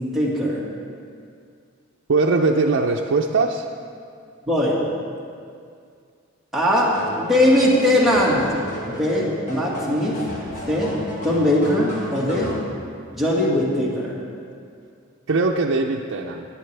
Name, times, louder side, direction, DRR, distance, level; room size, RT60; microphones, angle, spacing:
voice 1, 0.1-0.6 4.5-4.8 6.5-8.5 8.9-10.3 10.7-12.6 13.1-14.2, left 1 dB, ahead, -7 dB, 1.8 m, -20 dB
voice 2, 2.1-3.7 15.3-16.5, right 3 dB, 70° right, 0 dB, 0.5 m, -20 dB
sound 1, 6.8-12.6, equal, 35° left, 1.6 m, -35 dB
17.0 x 9.3 x 3.4 m, 2.3 s
head